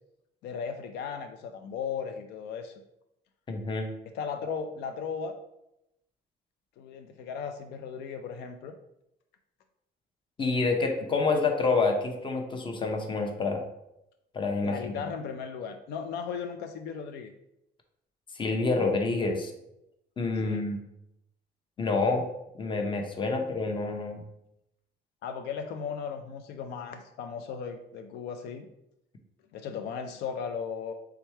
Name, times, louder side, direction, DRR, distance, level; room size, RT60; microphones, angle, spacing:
voice 1, 0.4-2.7 4.1-5.4 6.8-8.7 14.6-17.3 20.4-20.7 23.3-23.4 25.2-28.7 29.5-30.9, left 6 dB, 80° left, 7 dB, 0.4 m, -36 dB
voice 2, 3.5-3.9 10.4-13.6 14.3-14.9 18.3-19.5 20.2-20.8 21.8-22.2 22.6-24.2, left 3 dB, 30° left, 4 dB, 0.7 m, -27 dB
3.5 x 3.1 x 4.4 m, 0.84 s
cardioid pair, 110°, 17 cm